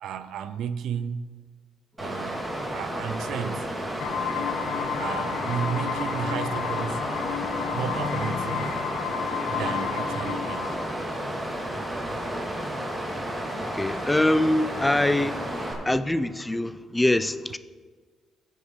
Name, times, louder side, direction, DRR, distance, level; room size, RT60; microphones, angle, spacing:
voice 1, 0.0-1.4 2.0-3.8 5.0-7.1 7.7-8.8 9.5-10.8, right 8 dB, 80° right, 0.5 m, -33 dB
Water, 2.0-15.7, right 1 dB, 10° right, 2.5 m, -32 dB
sound 1, 4.0-10.9, left 8 dB, 90° left, 0.6 m, -31 dB
voice 2, 13.5-15.4 15.9-17.6, left 1 dB, 10° left, 0.5 m, -24 dB
16.0 x 5.4 x 4.7 m
cardioid pair, 90°, 0 cm